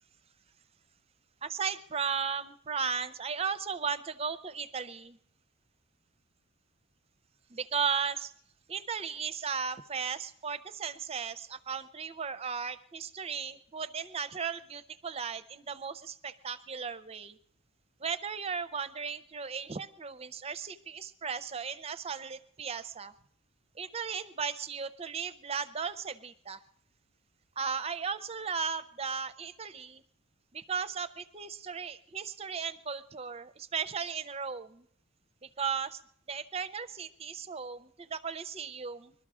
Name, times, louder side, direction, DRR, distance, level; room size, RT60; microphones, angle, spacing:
voice 1, 1.4-5.2 7.5-8.3 8.7-17.4 18.0-23.1 23.8-26.6 27.6-30.0 30.5-34.9 35.4-36.0 36.3-39.1, right 6 dB, 30° right, 14 dB, 0.5 m, -36 dB
21.5 x 12.5 x 4.9 m, 0.69 s
head